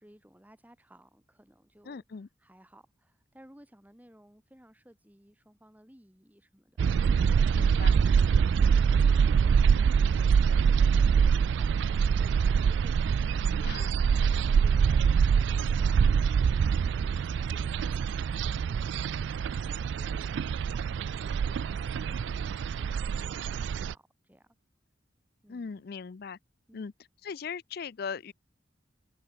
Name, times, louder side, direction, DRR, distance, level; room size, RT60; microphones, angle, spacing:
voice 1, 0.0-7.1 11.5-13.0 13.2-19.3 19.6-20.8 21.1-22.9 23.2-24.5 25.4-25.9 26.7-26.8, equal, 10° right, 2.4 m, -58 dB
voice 2, 1.9-2.3 7.5-8.0 13.6-13.9 25.5-26.4 26.7-26.9 27.2-28.3, left 6 dB, 55° left, 0.4 m, -39 dB
sound 1, 6.8-23.9, right 6 dB, 70° right, 0.3 m, -25 dB
head